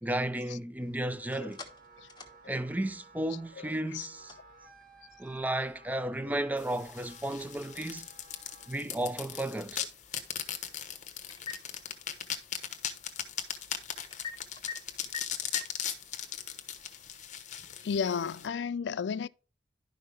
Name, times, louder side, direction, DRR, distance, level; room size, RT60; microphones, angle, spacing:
voice 1, 0.0-1.6 2.5-4.4 5.2-8.1 8.7-9.8, right 1 dB, 10° right, 0.4 m, -33 dB
sound 1, 0.8-17.1, left 6 dB, 25° left, 1.4 m, -50 dB
Wind instrument woodwind instrument, 1.1-8.8, right 3 dB, 50° right, 1.4 m, -56 dB
voice 2, 3.6-4.1 9.8-9.9 17.8-19.3, left 6 dB, 80° left, 0.4 m, -33 dB
sound 2, 6.6-18.5, left 9 dB, 40° left, 1.0 m, -39 dB
11.5 x 5.6 x 3.4 m
head